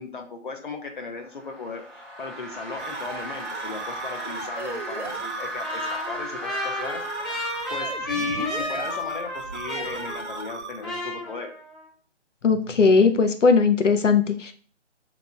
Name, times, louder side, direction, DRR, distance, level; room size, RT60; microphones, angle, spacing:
voice 1, 0.0-7.0 7.7-11.5, left 4 dB, 45° left, 3 dB, 0.7 m, -36 dB
sound 1, 1.1-8.2, right 1 dB, ahead, 0.4 m, -37 dB
sound 2, 2.5-11.0, right 4 dB, 70° right, 0.7 m, -38 dB
Trumpet, 5.6-10.6 10.8-11.8, left 1 dB, 20° left, 0.9 m, -32 dB
voice 2, 12.4-14.5, left 5 dB, 80° left, 7 dB, 0.7 m, -19 dB
3.4 x 3.0 x 3.9 m, 0.44 s
figure-of-eight pair, 165°, 36 cm